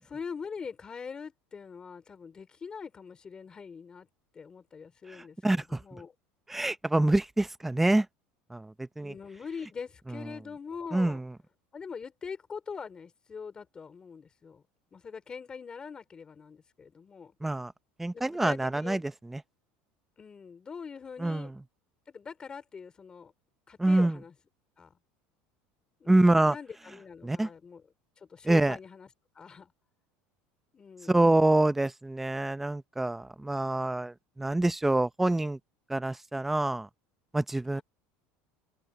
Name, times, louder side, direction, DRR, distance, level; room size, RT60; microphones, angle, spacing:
voice 1, 0.0-4.1 4.3-6.1 9.0-11.2 11.7-14.6 14.9-17.3 18.1-19.0 20.2-21.5 22.1-23.3 23.7-24.3 24.8-24.9 26.0-27.9 28.2-29.1 29.3-29.7 30.7-31.2 37.7-37.8, left 6 dB, 20° left, 4.1 m, -43 dB
voice 2, 5.4-5.8 6.5-8.1 8.5-9.1 10.9-11.2 17.4-17.7 18.0-19.0 19.3-19.4 21.2-21.5 23.8-24.1 26.1-26.5 27.2-27.5 28.4-28.7 31.1-35.6 35.9-36.9 37.3-37.8, right 2 dB, 5° right, 0.6 m, -26 dB
cardioid pair, 160°, 4 cm